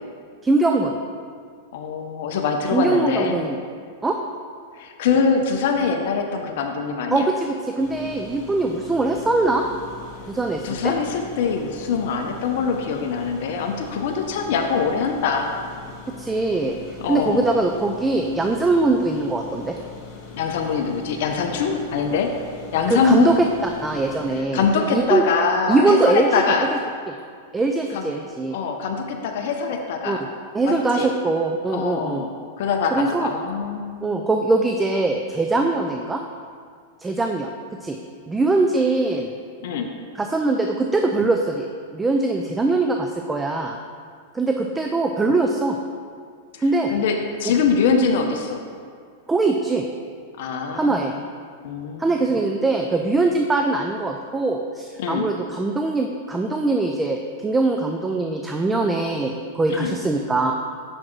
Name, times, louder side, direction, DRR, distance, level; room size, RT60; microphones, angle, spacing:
voice 1, 0.4-0.9 2.7-3.6 4.0-4.2 7.1-9.6 10.3-10.9 16.1-19.7 22.9-23.3 23.6-25.2 25.7-26.3 27.1-27.2 27.5-28.6 30.1-30.2 30.5-32.2 32.9-33.3 34.0-36.2 37.0-37.5 37.8-38.0 38.3-39.3 40.2-41.7 41.9-43.8 44.3-45.8 46.6-46.9 49.3-49.8 50.7-51.1 52.0-60.5, right 3 dB, 10° right, 3 dB, 0.3 m, -22 dB
voice 2, 1.7-3.4 4.8-7.3 10.6-15.6 17.0-17.4 20.3-22.3 22.7-23.3 24.5-26.7 27.9-28.0 28.5-30.2 30.7-31.1 31.7-32.3 32.6-34.1 39.6-39.9 46.5-46.6 46.9-48.6 50.4-51.2 51.6-52.4 55.0-55.2 59.7-59.9, left 5 dB, 65° left, 3 dB, 0.5 m, -23 dB
sound 1, 7.8-24.4, left 4 dB, 40° left, 1.1 m, -41 dB
6.3 x 5.9 x 3.1 m, 2.1 s
hypercardioid pair, 130°, 0 cm